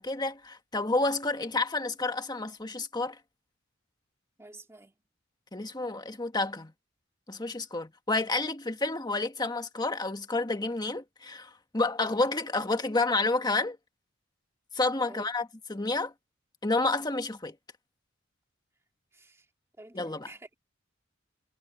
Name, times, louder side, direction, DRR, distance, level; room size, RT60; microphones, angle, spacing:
voice 1, 0.0-3.2 5.5-6.7 7.3-13.8 14.7-16.1 16.6-17.5 19.9-20.3, left 2 dB, 20° left, 1.7 m, -30 dB
voice 2, 4.4-4.9 15.1-15.3 19.1-19.5 19.8-20.5, right 2 dB, 15° right, 2.1 m, -49 dB
head